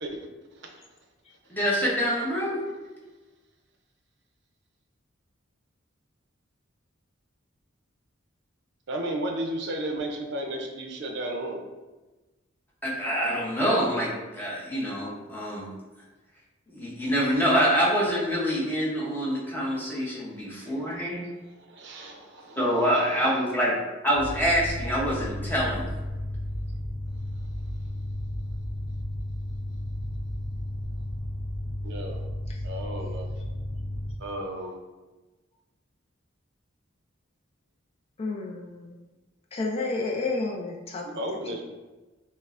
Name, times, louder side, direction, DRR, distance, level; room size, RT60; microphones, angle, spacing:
voice 1, 1.5-2.6 12.8-15.7 16.7-21.3 22.6-23.8 24.0-25.9, equal, 10° left, -5 dB, 0.8 m, -26 dB
voice 2, 8.9-11.6 21.7-22.6 22.9-23.0 31.8-32.2 32.6-33.3 34.2-34.8 41.0-41.6, right 1 dB, 60° right, 2 dB, 0.6 m, -33 dB
sound 1, 24.1-34.1, left 1 dB, 85° left, 0.7 m, -33 dB
voice 3, 38.2-39.0 39.5-41.1, left 3 dB, 30° left, 0 dB, 0.3 m, -31 dB
5.2 x 2.1 x 2.5 m, 1.2 s
head